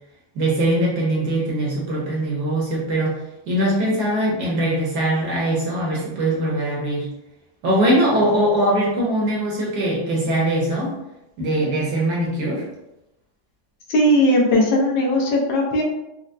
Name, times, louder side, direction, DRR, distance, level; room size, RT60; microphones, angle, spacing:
voice 1, 0.3-3.1 3.5-7.1 7.6-10.9 11.4-12.6, right 1 dB, 65° right, -4 dB, 1.1 m, -21 dB
voice 2, 13.9-15.8, left 1 dB, 75° left, -2 dB, 1.3 m, -18 dB
4.3 x 2.0 x 2.5 m, 0.90 s
omnidirectional pair, 2.2 m